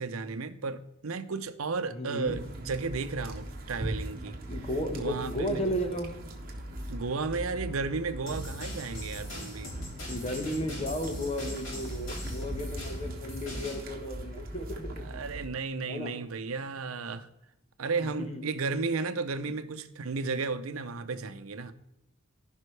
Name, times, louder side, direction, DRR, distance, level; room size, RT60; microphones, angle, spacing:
voice 1, 0.0-4.4 4.9-5.7 6.9-9.7 15.0-17.3 17.8-21.7, right 4 dB, 90° right, 0.7 m, -33 dB
voice 2, 1.9-2.4 4.5-6.1 10.0-15.0 15.9-16.1 17.9-18.4, equal, 30° left, 1.2 m, -34 dB
sound 1, 2.2-15.5, right 1 dB, 45° right, 1.4 m, -40 dB
sound 2, 8.3-13.8, equal, 70° left, 3.7 m, -41 dB
15.0 x 5.4 x 3.3 m
head